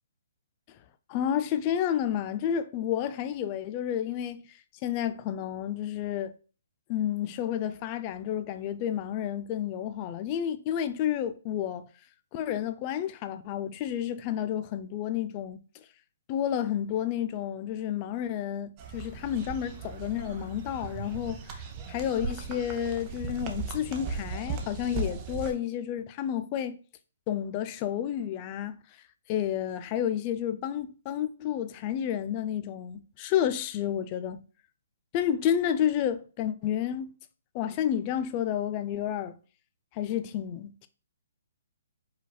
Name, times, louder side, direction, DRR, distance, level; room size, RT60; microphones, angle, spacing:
voice 1, 1.1-4.4 4.8-6.3 6.9-11.8 12.3-15.6 16.3-26.8 27.3-28.8 29.3-34.4 35.1-37.1 37.5-39.4 39.9-40.9, left 10 dB, 30° left, 0.4 m, -30 dB
sound 1, 18.8-25.5, right 5 dB, 25° right, 0.7 m, -37 dB
5.0 x 4.1 x 2.2 m
hypercardioid pair, 155°, 0 cm